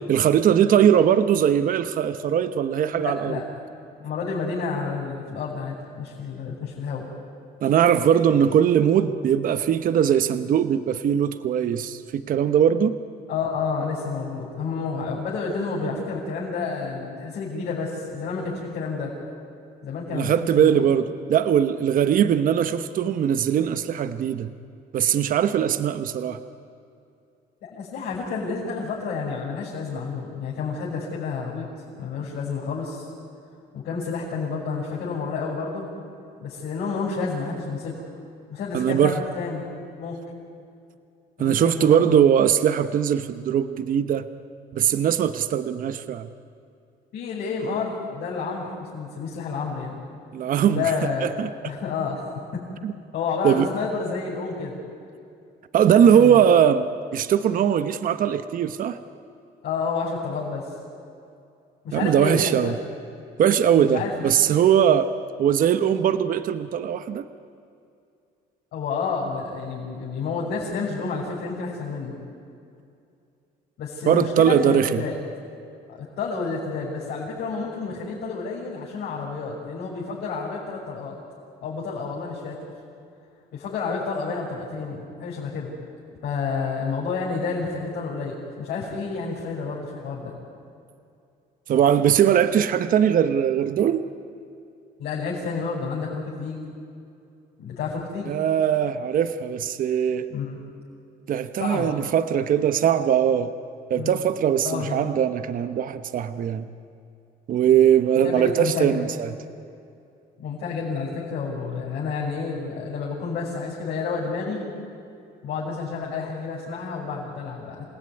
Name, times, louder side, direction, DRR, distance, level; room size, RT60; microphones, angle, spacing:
voice 1, 0.1-3.3 7.6-13.0 20.1-24.5 24.9-26.4 38.7-39.2 41.4-44.3 44.7-46.3 50.3-50.9 51.2-51.5 52.8-52.9 53.4-53.7 55.7-56.9 57.1-59.0 61.9-62.7 63.4-65.1 65.4-67.3 74.1-75.0 91.7-94.0 98.3-100.3 101.3-103.5 103.9-106.7 107.5-109.3, right 9 dB, 55° right, 10 dB, 1.0 m, -20 dB
voice 2, 2.9-3.4 4.0-7.1 13.3-19.1 19.8-20.9 27.6-31.7 32.0-33.1 33.7-35.9 36.4-38.1 38.5-39.6 40.0-40.2 41.4-42.1 47.1-50.0 50.7-51.3 51.6-52.2 52.5-52.6 53.1-54.8 55.8-56.4 59.6-60.7 61.8-62.7 63.8-64.4 68.7-72.1 73.8-75.1 75.9-81.2 81.6-82.6 83.5-85.7 86.2-90.3 95.0-96.6 97.6-98.3 100.3-100.6 101.6-101.9 103.9-104.2 104.6-105.0 107.7-107.8 108.2-109.1 110.4-114.6 115.4-117.8, left 4 dB, 75° left, -6 dB, 6.3 m, -30 dB
28.0 x 17.0 x 9.8 m, 2.5 s
cardioid pair, 110°, 17 cm